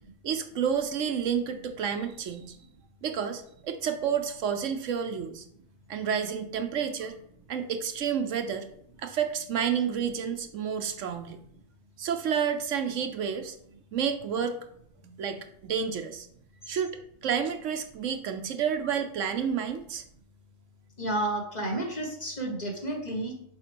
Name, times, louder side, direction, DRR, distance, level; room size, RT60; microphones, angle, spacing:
voice 1, 0.2-2.6 3.0-5.4 5.9-7.2 7.5-8.7 9.0-11.4 12.0-13.6 13.9-14.6 15.0-16.3 16.7-20.0, right 7 dB, 70° right, 8 dB, 1.1 m, -30 dB
voice 2, 21.0-23.3, right 1 dB, 35° left, 0 dB, 1.5 m, -31 dB
7.1 x 5.2 x 5.2 m, 0.69 s
omnidirectional pair, 1.4 m